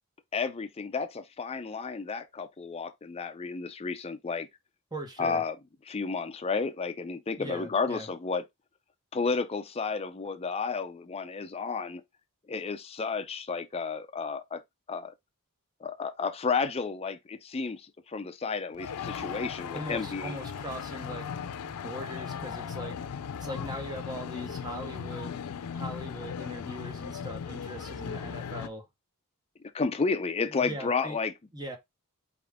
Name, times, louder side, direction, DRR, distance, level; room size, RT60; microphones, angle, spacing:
voice 1, 0.3-4.5 5.2-5.6 5.9-8.4 9.1-12.0 12.5-14.6 14.9-15.1 15.8-20.4 29.7-31.3, left 4 dB, 25° left, 0.4 m, -32 dB
voice 2, 4.9-5.4 7.4-8.1 19.7-21.3 21.7-23.0 23.4-25.4 25.7-28.8 30.5-31.2 31.5-31.8, equal, 20° right, 1.0 m, -40 dB
sound 1, 18.7-28.7, left 7 dB, 90° left, 0.4 m, -37 dB
4.3 x 3.6 x 3.4 m
head